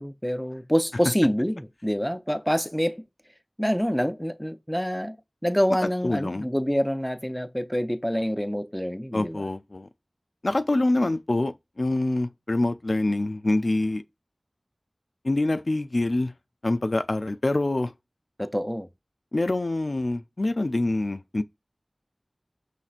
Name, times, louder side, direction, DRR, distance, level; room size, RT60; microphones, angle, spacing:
voice 1, 0.0-3.0 3.6-5.2 5.4-9.4 18.4-18.9, equal, 5° left, 0.5 m, -26 dB
voice 2, 5.8-6.5 9.1-9.9 10.4-14.0 15.2-16.3 16.6-17.9 19.3-21.4, left 2 dB, 65° left, 0.3 m, -25 dB
5.7 x 3.1 x 2.4 m
wide cardioid pair, 45°, 0 cm